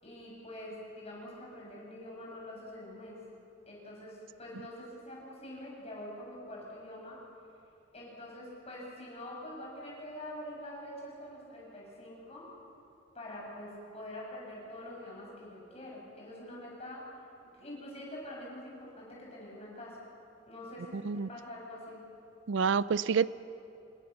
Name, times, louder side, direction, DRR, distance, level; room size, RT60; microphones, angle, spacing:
voice 1, 0.0-3.3 3.7-7.2 7.9-12.5 13.1-17.0 17.4-20.0 20.5-22.0, left 1 dB, 30° left, -3 dB, 7.4 m, -45 dB
voice 2, 20.9-21.3 22.5-23.3, right 6 dB, 65° right, 17 dB, 0.4 m, -28 dB
27.0 x 21.0 x 6.8 m, 2.7 s
head